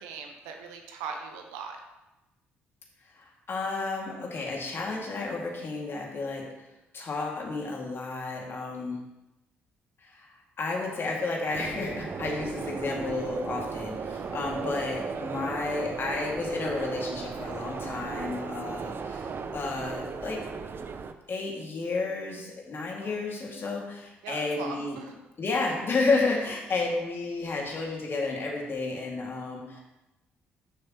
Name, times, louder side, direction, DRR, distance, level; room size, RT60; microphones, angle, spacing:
voice 1, 0.0-1.8 23.0-23.1 24.2-25.1 29.7-29.8, right 5 dB, 70° right, 3 dB, 1.1 m, -39 dB
voice 2, 3.1-6.5 6.9-9.0 10.0-10.3 10.6-19.3 19.5-20.4 21.3-25.0 25.4-29.8, left 3 dB, 40° left, -1 dB, 2.3 m, -31 dB
sound 1, 11.5-21.1, right 5 dB, 40° right, 0.7 m, -36 dB
11.5 x 6.4 x 3.1 m, 0.98 s
figure-of-eight pair, 45°, 6 cm